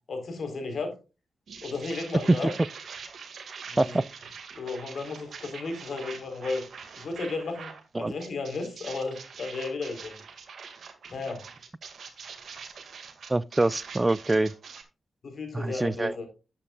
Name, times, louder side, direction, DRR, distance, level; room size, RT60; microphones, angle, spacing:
voice 1, 0.1-0.9 1.6-2.5 3.7-4.0 4.5-6.6 7.0-10.2 11.1-11.4 15.2-16.3, left 3 dB, 70° left, 4.0 m, -34 dB
sound 1, 1.5-7.8 8.2-14.8, right 6 dB, 70° right, 2.0 m, -44 dB
voice 2, 13.3-14.5 15.5-16.1, right 2 dB, 25° right, 0.4 m, -25 dB
11.5 x 8.6 x 2.4 m
supercardioid pair, 50°, 0 cm